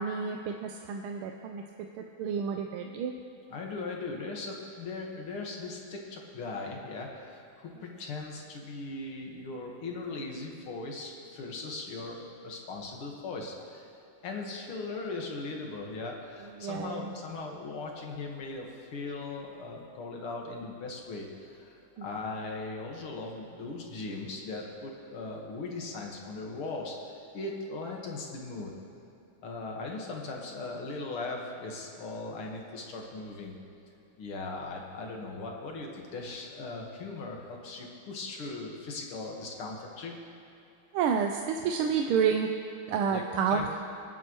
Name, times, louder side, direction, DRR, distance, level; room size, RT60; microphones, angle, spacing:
voice 1, 0.0-1.6 2.0-3.1 16.6-17.1 22.0-22.1 40.9-42.5 42.9-43.6, right 7 dB, 90° right, 3 dB, 1.5 m, -29 dB
voice 2, 3.5-13.9 14.2-28.7 29.4-33.6 34.2-40.1 43.1-43.2 43.5-43.6, left 3 dB, 85° left, 0 dB, 2.4 m, -39 dB
26.5 x 9.1 x 3.1 m, 2.9 s
omnidirectional pair, 2.3 m